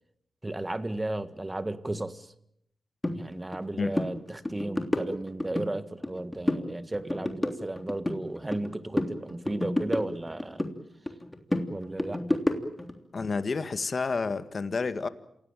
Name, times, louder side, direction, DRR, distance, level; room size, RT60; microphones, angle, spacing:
voice 1, 0.4-2.3 3.1-10.6 11.7-12.6, right 2 dB, 25° right, 1.7 m, -34 dB
sound 1, 3.0-3.2 3.5-3.7 3.9-4.1 4.5-5.7 6.0-6.7 6.9-8.7 9.0-10.7 11.1-12.9, left 1 dB, 15° left, 3.3 m, -30 dB
voice 2, 13.1-15.1, left 4 dB, 55° left, 1.7 m, -29 dB
27.0 x 17.5 x 9.1 m
cardioid pair, 50°, 0 cm